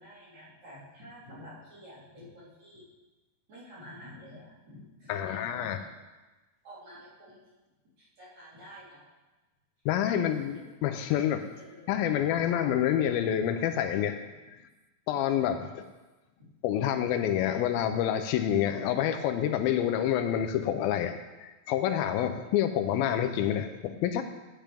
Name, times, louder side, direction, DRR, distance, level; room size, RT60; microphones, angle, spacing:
voice 1, 0.0-2.8 3.5-5.9 6.6-7.4 8.0-9.0 10.1-10.7 11.1-11.9 15.6-15.8 16.4-16.5, equal, 50° right, -9 dB, 4.7 m, -49 dB
voice 2, 5.1-5.8 9.9-11.4 11.9-14.2 15.1-15.8 16.6-21.2 21.4-24.2, left 10 dB, 85° left, 7 dB, 2.4 m, -28 dB
12.0 x 9.0 x 3.5 m, 1.1 s
omnidirectional pair, 4.2 m